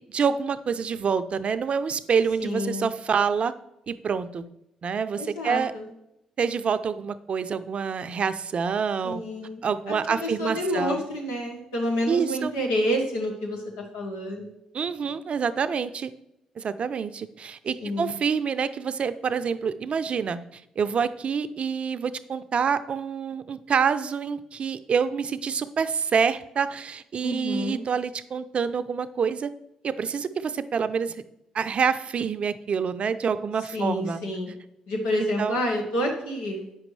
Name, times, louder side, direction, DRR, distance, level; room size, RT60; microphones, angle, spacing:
voice 1, 0.0-3.5 3.9-4.4 4.8-5.7 6.4-9.2 9.6-11.0 12.1-12.5 14.7-16.1 16.6-29.5 29.8-31.2 31.5-34.2 35.4-35.6, right 6 dB, 55° right, 12 dB, 0.5 m, -27 dB
voice 2, 2.4-2.9 5.2-5.9 9.0-9.6 9.9-14.5 17.8-18.1 27.2-27.8 33.7-34.5 34.9-36.7, equal, 90° left, 1 dB, 1.5 m, -29 dB
8.3 x 6.1 x 3.2 m, 0.84 s
hypercardioid pair, 50°, 2 cm